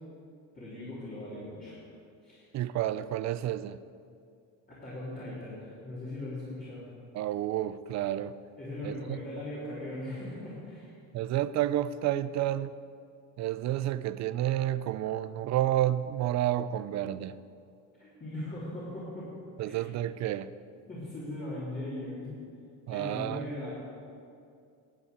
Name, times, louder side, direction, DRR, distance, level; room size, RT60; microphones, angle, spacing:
voice 1, 0.5-1.8 2.2-2.5 4.7-6.9 8.6-11.0 18.0-19.3 19.6-19.8 20.9-22.3 22.9-23.7, left 1 dB, 25° left, -9 dB, 3.3 m, -39 dB
voice 2, 2.5-3.8 7.1-8.4 8.8-9.2 11.1-12.7 13.4-17.4 19.6-20.5 22.9-23.5, right 12 dB, 45° right, 15 dB, 0.5 m, -30 dB
11.0 x 8.7 x 8.2 m, 2.4 s
cardioid pair, 160°, 37 cm